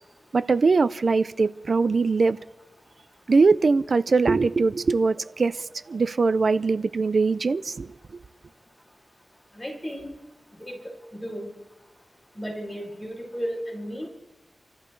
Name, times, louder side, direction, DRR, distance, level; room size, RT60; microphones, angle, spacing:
voice 1, 0.3-2.4 3.3-7.9, right 4 dB, 65° right, 0.5 m, -22 dB
voice 2, 9.5-10.2 10.6-11.5 12.3-14.1, equal, 15° left, 5.5 m, -34 dB
27.0 x 14.0 x 3.3 m
wide cardioid pair, 65°, 0 cm